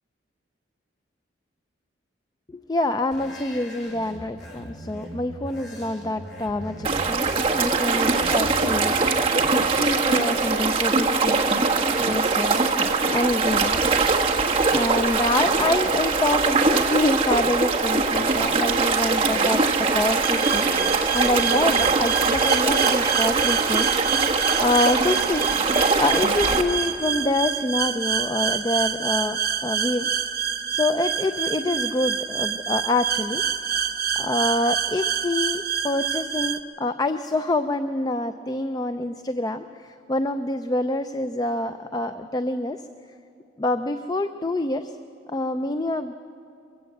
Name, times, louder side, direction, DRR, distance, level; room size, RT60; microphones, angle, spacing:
voice 1, 2.5-11.4 11.8-13.8 14.7-19.6 19.9-24.2 24.6-30.1 30.7-33.4 34.2-42.8 43.6-44.9 45.3-46.1, left 2 dB, 20° left, 9 dB, 0.4 m, -26 dB
sound 1, 3.1-10.0, equal, 60° left, 3.5 m, -40 dB
sound 2, 6.8-26.6, right 4 dB, 30° right, 1.3 m, -22 dB
sound 3, 20.2-36.6, right 8 dB, 55° right, 0.9 m, -27 dB
22.5 x 15.5 x 7.9 m, 2.7 s
head